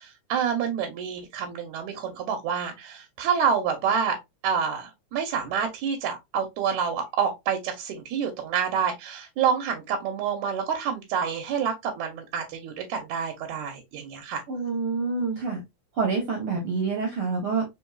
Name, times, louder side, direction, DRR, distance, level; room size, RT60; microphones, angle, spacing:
voice 1, 0.0-4.2 4.4-14.4, right 7 dB, 80° right, 2.1 m, -28 dB
voice 2, 14.5-15.6 15.9-17.6, right 4 dB, 65° right, 1.4 m, -27 dB
4.5 x 3.3 x 2.3 m
omnidirectional pair, 3.4 m